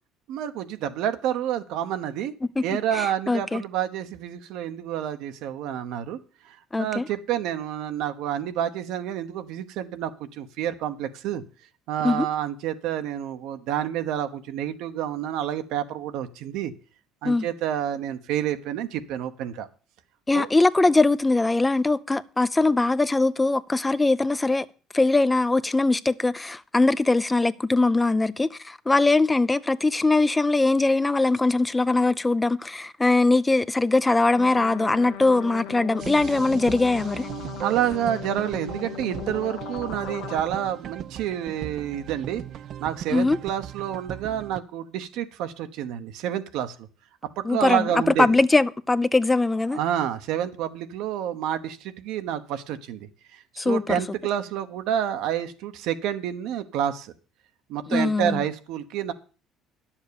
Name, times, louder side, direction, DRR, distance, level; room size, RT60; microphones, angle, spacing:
voice 1, 0.3-2.3 2.6-6.2 6.4-11.4 11.9-16.7 17.2-19.7 20.3-20.5 37.6-42.4 42.8-46.9 47.4-48.4 49.7-57.1 57.7-59.1, right 10 dB, 75° right, 1.1 m, -29 dB
voice 2, 2.9-3.6 6.7-7.1 12.0-12.3 17.2-17.5 20.3-24.7 24.9-37.3 43.1-43.4 47.4-47.9 48.2-49.8 53.6-54.0 57.9-58.4, left 2 dB, 15° left, 0.5 m, -21 dB
sound 1, 34.3-40.4, left 9 dB, 85° left, 1.1 m, -38 dB
sound 2, 36.0-44.6, right 9 dB, 55° right, 0.5 m, -38 dB
10.5 x 7.3 x 7.0 m
supercardioid pair, 100°, 0 cm